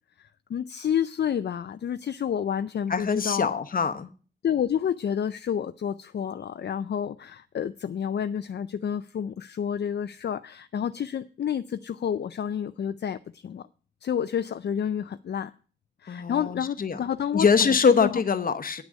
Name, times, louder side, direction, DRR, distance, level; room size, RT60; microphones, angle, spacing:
voice 1, 0.2-3.6 4.4-13.7 14.0-15.5 16.0-18.2, left 8 dB, 65° left, 0.4 m, -29 dB
voice 2, 2.9-4.1 16.1-17.0 17.3-18.8, left 5 dB, 50° left, 0.9 m, -23 dB
9.5 x 6.2 x 8.4 m
wide cardioid pair, 175°, 19 cm